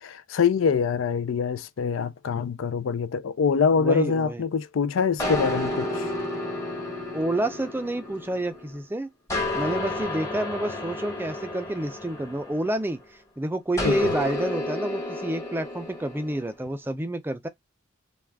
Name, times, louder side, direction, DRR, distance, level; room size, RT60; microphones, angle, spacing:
voice 1, 0.0-6.1 13.8-14.1, left 6 dB, 80° left, 0.4 m, -25 dB
voice 2, 3.8-4.4 7.1-9.1 9.6-17.5, right 1 dB, 10° right, 0.4 m, -29 dB
sound 1, 5.2-8.8 9.3-13.0 13.8-16.4, left 2 dB, 15° left, 1.0 m, -31 dB
2.3 x 2.3 x 3.4 m
head